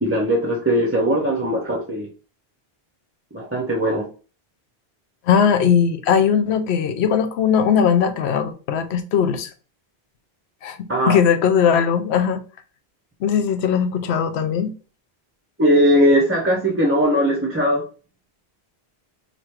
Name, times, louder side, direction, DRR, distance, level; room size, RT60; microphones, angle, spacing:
voice 1, 0.0-2.1 3.3-4.1 10.9-11.2 15.6-17.8, equal, 20° right, 0.4 m, -19 dB
voice 2, 5.3-9.5 10.6-12.4 13.2-14.7, left 7 dB, 90° left, 0.9 m, -19 dB
3.1 x 2.6 x 4.4 m
omnidirectional pair, 1.1 m